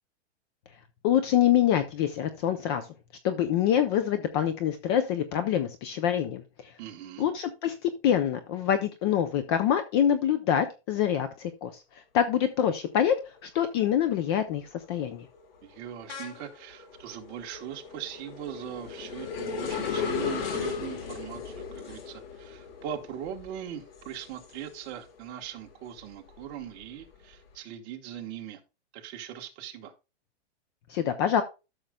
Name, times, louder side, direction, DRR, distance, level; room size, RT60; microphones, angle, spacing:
voice 1, 1.0-2.9 3.2-6.7 7.2-11.8 12.1-13.1 13.4-14.6 14.9-15.3 30.9-31.4, left 10 dB, 25° left, 0.5 m, -25 dB
voice 2, 6.8-7.3 15.6-28.6 28.9-29.9, right 10 dB, 30° right, 1.3 m, -40 dB
lokomotiva sama + houkání, 13.2-13.6 14.0-25.2 25.6-27.3, left 6 dB, 60° left, 2.2 m, -37 dB
13.0 x 6.4 x 2.3 m
hypercardioid pair, 160°, 34 cm